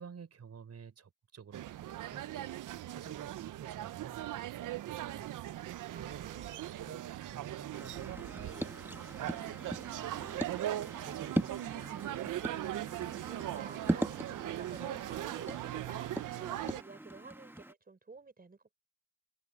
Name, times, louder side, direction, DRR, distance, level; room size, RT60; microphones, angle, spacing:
voice 1, 0.0-2.3 2.7-5.3 5.6-6.3 6.7-12.3, right 6 dB, 55° right, 6.1 m, -52 dB
sound 1, 1.5-16.8, right 13 dB, 75° right, 0.6 m, -40 dB
voice 2, 5.9-6.7 13.2-18.7, right 4 dB, 30° right, 5.3 m, -51 dB
sound 2, 7.7-17.7, right 1 dB, 5° right, 1.1 m, -40 dB
open air
cardioid pair, 95°, 32 cm